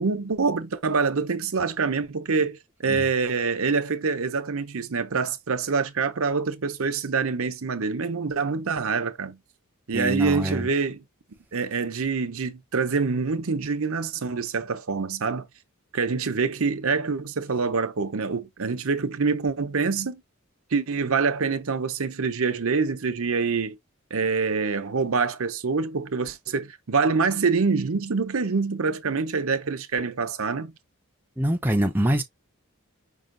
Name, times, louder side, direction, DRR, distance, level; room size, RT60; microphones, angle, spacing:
voice 1, 0.0-9.4 9.9-11.0 11.5-15.5 15.9-20.2 20.7-23.8 24.1-30.7, right 4 dB, 65° right, 0.7 m, -25 dB
voice 2, 9.9-10.7 31.4-32.2, right 1 dB, 10° right, 0.5 m, -24 dB
5.5 x 2.4 x 3.7 m
head